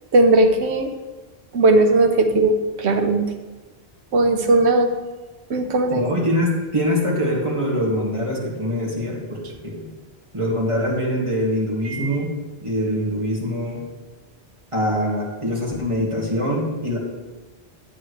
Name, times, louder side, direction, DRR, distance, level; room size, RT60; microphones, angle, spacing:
voice 1, 0.1-0.9 1.5-3.3 4.1-4.9 5.5-6.1 11.9-12.1, right 2 dB, 80° right, 6 dB, 1.1 m, -17 dB
voice 2, 5.9-9.8 10.3-12.3 12.6-13.8 14.7-17.0, equal, 30° right, -4 dB, 2.1 m, -23 dB
9.0 x 8.9 x 3.2 m, 1.2 s
omnidirectional pair, 1.1 m